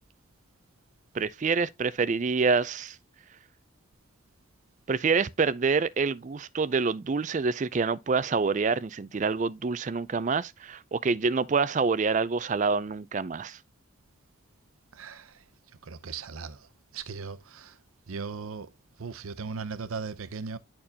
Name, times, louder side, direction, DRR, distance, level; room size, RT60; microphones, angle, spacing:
voice 1, 1.1-3.0 4.9-13.6, right 4 dB, 35° right, 0.4 m, -27 dB
voice 2, 15.9-16.5 16.9-17.4 18.1-18.7 19.0-20.6, right 5 dB, 85° right, 0.7 m, -37 dB
10.0 x 4.4 x 2.8 m
head